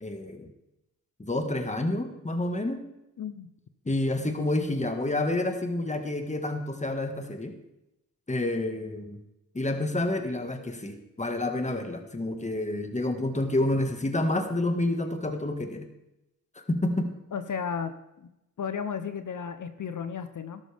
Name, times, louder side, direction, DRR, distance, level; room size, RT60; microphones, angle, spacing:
voice 1, 0.0-0.5 1.2-2.8 3.9-7.5 8.3-9.2 9.5-15.9 16.6-17.1, left 2 dB, 20° left, 5 dB, 1.7 m, -29 dB
voice 2, 3.2-3.5 17.3-18.3 18.6-20.6, left 6 dB, 60° left, 10 dB, 0.9 m, -34 dB
12.5 x 12.0 x 3.5 m, 0.90 s
cardioid pair, 55°, 34 cm